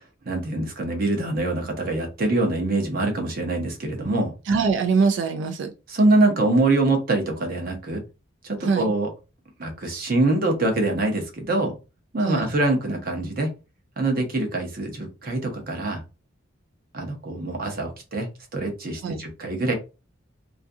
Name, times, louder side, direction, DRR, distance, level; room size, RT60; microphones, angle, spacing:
voice 1, 0.3-4.3 5.9-8.0 8.4-9.1 9.6-11.8 12.1-13.5 14.0-16.0 16.9-19.7, right 2 dB, 45° right, 3 dB, 0.7 m, -24 dB
voice 2, 4.5-5.7 8.6-8.9 12.2-12.5 19.0-19.2, right 5 dB, 65° right, 6 dB, 0.3 m, -23 dB
2.5 x 2.5 x 2.3 m, 0.29 s
head